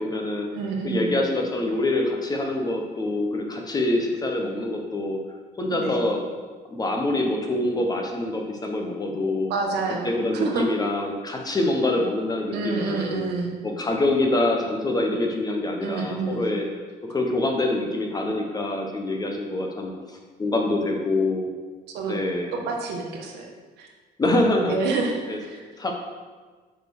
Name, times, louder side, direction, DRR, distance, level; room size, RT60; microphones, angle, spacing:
voice 1, 0.0-0.5 0.8-5.2 5.6-6.2 6.7-9.5 10.0-13.3 13.6-16.6 17.1-21.5 22.1-22.6 24.2-24.7 25.3-25.4 25.8-25.9, left 2 dB, 20° left, 2 dB, 1.1 m, -25 dB
voice 2, 0.5-1.1 5.7-6.0 9.5-10.7 12.5-13.6 15.8-16.5 21.9-22.2 22.5-23.5 23.8-23.9 24.7-25.6, right 4 dB, 80° right, 1 dB, 1.3 m, -28 dB
6.4 x 4.3 x 6.1 m, 1.4 s
cardioid pair, 110°, 17 cm